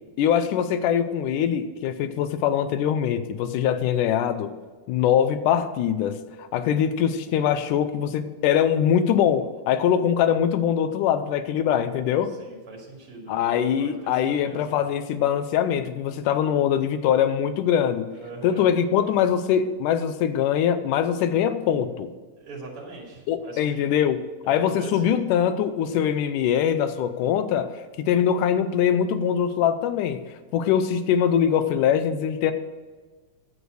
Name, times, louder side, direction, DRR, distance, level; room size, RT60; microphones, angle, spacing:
voice 1, 0.2-4.5 4.9-6.2 6.5-12.3 13.3-18.1 18.4-22.1 23.3-27.7 28.0-30.2 30.5-32.5, left 9 dB, 80° left, 11 dB, 2.2 m, -23 dB
voice 2, 12.4-14.6 18.1-18.7 22.4-24.0 24.4-25.1, right 2 dB, 45° right, -2 dB, 3.5 m, -41 dB
10.5 x 8.0 x 6.3 m, 1.4 s
omnidirectional pair, 3.7 m